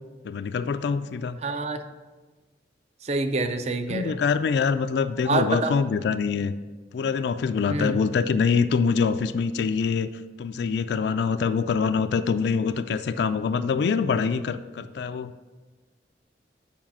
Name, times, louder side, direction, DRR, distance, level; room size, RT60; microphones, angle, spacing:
voice 1, 0.2-1.4 3.9-6.5 6.9-10.1 10.4-15.3, left 5 dB, 70° left, 10 dB, 0.3 m, -24 dB
voice 2, 1.4-1.8 3.0-4.2 5.3-5.8 7.7-8.0, right 3 dB, 35° right, 9 dB, 0.5 m, -27 dB
7.2 x 4.8 x 5.9 m, 1.3 s
head